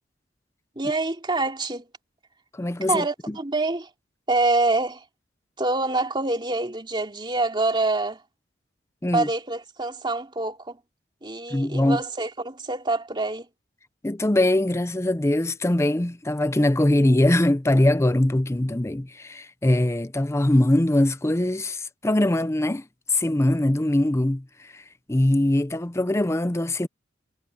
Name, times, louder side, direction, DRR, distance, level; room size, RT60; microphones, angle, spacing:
voice 1, 0.7-1.9 2.9-3.9 4.3-5.0 5.6-8.2 9.1-10.8 11.2-13.5, right 2 dB, 25° right, 3.0 m, -26 dB
voice 2, 2.5-3.4 9.0-9.3 11.5-12.0 14.0-22.8 23.1-24.8 25.1-26.9, left 1 dB, 15° left, 0.6 m, -22 dB
head